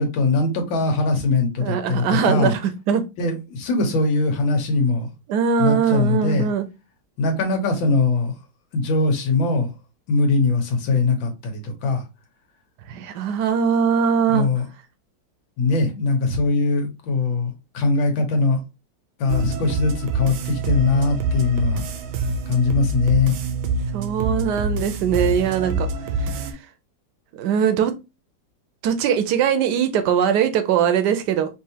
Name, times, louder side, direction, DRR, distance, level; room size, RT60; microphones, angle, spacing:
voice 1, 0.0-2.5 3.2-5.1 5.6-6.5 7.2-8.3 8.7-9.7 10.1-12.0 14.3-14.6 15.6-18.6 19.2-21.8 22.5-23.4, left 3 dB, 80° left, 1.8 m, -21 dB
voice 2, 1.6-3.1 5.3-6.7 12.9-14.5 23.9-25.9 26.2-26.5 27.4-27.9 28.8-31.5, right 7 dB, 70° right, 1.1 m, -21 dB
sound 1, 19.3-26.5, right 3 dB, 90° right, 1.5 m, -26 dB
4.8 x 2.7 x 2.8 m
omnidirectional pair, 2.1 m